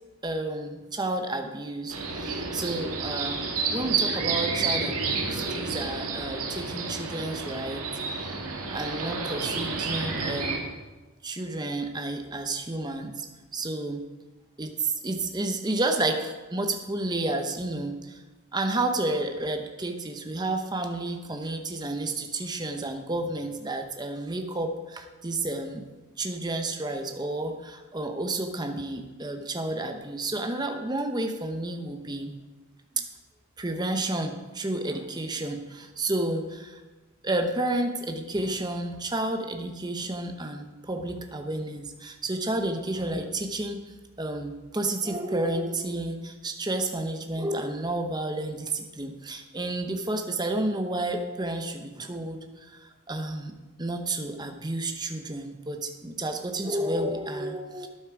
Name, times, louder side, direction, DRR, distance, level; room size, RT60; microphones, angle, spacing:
voice 1, 0.2-7.8 8.2-8.3 8.7-10.7 11.2-13.3 13.5-14.1 14.6-18.2 18.5-25.8 26.2-32.4 33.0-33.1 33.6-36.8 37.2-43.8 44.2-57.9, right 2 dB, 20° right, 5 dB, 0.8 m, -31 dB
sound 1, 1.9-10.6, right 4 dB, 85° right, 2.0 m, -30 dB
12.0 x 9.4 x 4.8 m, 1.2 s
head